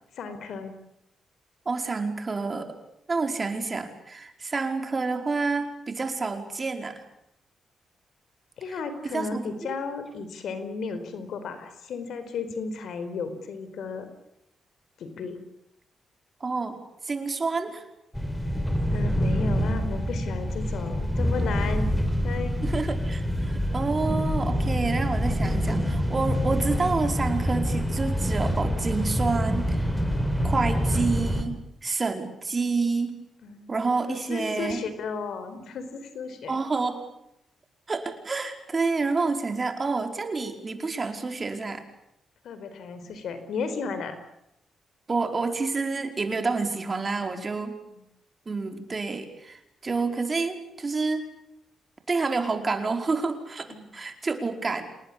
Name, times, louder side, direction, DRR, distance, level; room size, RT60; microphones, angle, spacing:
voice 1, 0.1-0.7 8.6-14.1 15.0-15.4 18.9-22.0 22.2-22.6 33.4-33.8 34.1-36.5 42.4-44.2 47.2-47.4 47.9-48.0 53.7-54.0, left 4 dB, 75° left, 10 dB, 4.4 m, -34 dB
voice 2, 1.6-2.8 3.1-7.0 9.1-9.7 16.4-16.8 17.0-17.8 22.6-29.9 30.4-33.2 33.7-34.8 36.5-37.0 37.9-41.8 45.1-47.7 48.5-51.3 52.1-54.9, right 4 dB, 35° right, 6 dB, 4.8 m, -28 dB
sound 1, 18.1-31.4, equal, 10° left, 5.5 m, -26 dB
27.5 x 19.5 x 8.7 m, 0.81 s
cardioid pair, 65°, 0 cm